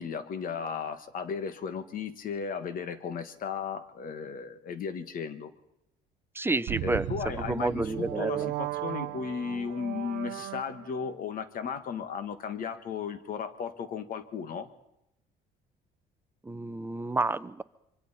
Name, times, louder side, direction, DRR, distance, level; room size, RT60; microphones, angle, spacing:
voice 1, 0.0-5.5 6.8-14.7, left 6 dB, 55° left, 11 dB, 1.6 m, -35 dB
voice 2, 6.3-7.1 7.5-8.5 16.4-17.6, right 2 dB, 15° right, 13 dB, 0.6 m, -30 dB
sound 1, 6.7-11.1, right 15 dB, 80° right, 0.7 m, -36 dB
25.5 x 24.0 x 4.3 m, 0.86 s
cardioid pair, 110°, 17 cm